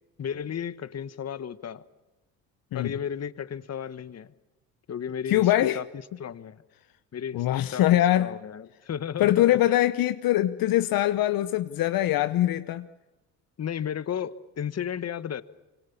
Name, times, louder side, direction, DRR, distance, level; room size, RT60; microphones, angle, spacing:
voice 1, 0.2-1.8 2.7-4.3 4.9-5.8 6.2-6.6 7.1-7.8 8.2-9.8 13.6-15.4, left 8 dB, 40° left, 15 dB, 1.3 m, -34 dB
voice 2, 5.3-5.8 7.3-8.3 9.2-12.9, left 13 dB, 65° left, 11 dB, 1.0 m, -23 dB
25.5 x 25.0 x 7.2 m, 1.1 s
supercardioid pair, 65°, 38 cm